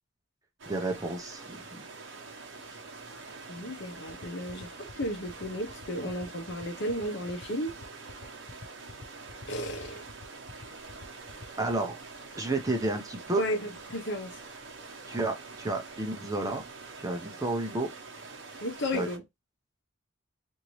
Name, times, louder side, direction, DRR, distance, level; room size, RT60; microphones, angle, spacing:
sound 1, 0.6-19.2, right 4 dB, 65° right, 0.9 m, -46 dB
voice 1, 0.7-1.8 3.6-3.7 11.6-12.0 12.4-13.4 15.1-16.6 17.0-17.9 18.9-19.1, right 2 dB, 15° right, 0.6 m, -31 dB
voice 2, 3.5-7.7 9.5-10.0 13.4-14.4 18.6-19.2, equal, 60° left, 0.8 m, -34 dB
sound 2, 4.1-11.7, left 4 dB, 45° left, 0.5 m, -47 dB
2.9 x 2.6 x 3.0 m
head